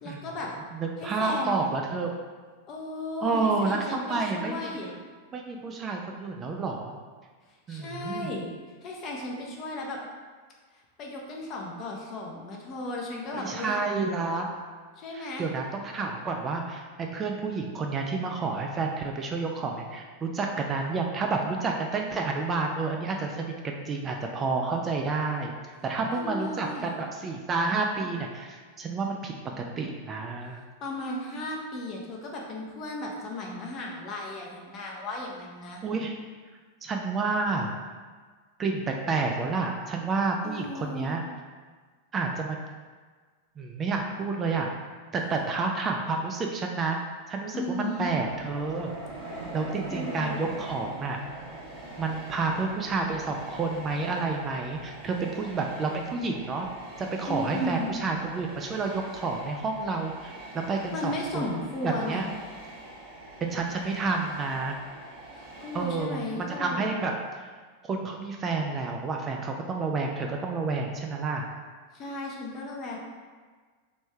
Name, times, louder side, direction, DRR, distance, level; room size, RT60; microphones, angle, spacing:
voice 1, 0.0-0.5 1.0-1.5 2.7-5.0 7.7-8.5 8.8-10.0 10.7-13.7 15.0-15.5 26.1-27.0 30.8-35.8 40.4-41.2 47.5-48.1 49.9-50.6 57.3-57.9 60.9-62.2 65.3-67.0 71.9-73.0, left 1 dB, 35° left, -1 dB, 0.6 m, -35 dB
voice 2, 0.7-2.1 3.2-4.7 5.3-6.9 7.7-8.3 13.3-14.5 15.1-25.5 25.8-30.6 35.8-36.2 36.8-37.7 38.6-41.2 42.1-42.6 43.6-44.7 45.1-47.0 47.3-48.9 49.5-51.2 52.0-56.7 57.0-61.4 61.8-62.3 63.4-64.8 65.7-67.2 67.8-71.5, right 4 dB, 25° right, 2 dB, 0.3 m, -30 dB
Train, 47.8-66.7, right 1 dB, 40° right, 0.9 m, -43 dB
3.1 x 3.1 x 3.2 m, 1.5 s
figure-of-eight pair, 90°, 0 cm